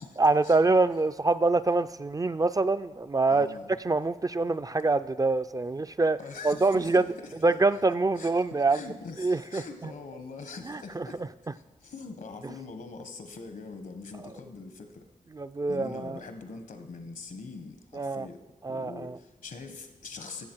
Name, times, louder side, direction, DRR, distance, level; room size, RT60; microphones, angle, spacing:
voice 1, 0.2-3.5 3.8-7.0 7.4-8.8 9.2-9.9 10.7-11.1 15.3-16.2 17.9-18.3 18.6-19.2, right 3 dB, 25° right, 12 dB, 0.3 m, -25 dB
voice 2, 3.3-3.8 6.2-7.6 8.2-11.2 11.5-15.0 15.7-18.4 18.7-20.5, left 4 dB, 80° left, 7 dB, 1.1 m, -43 dB
15.0 x 7.1 x 4.5 m, 1.2 s
cardioid pair, 60°, 14 cm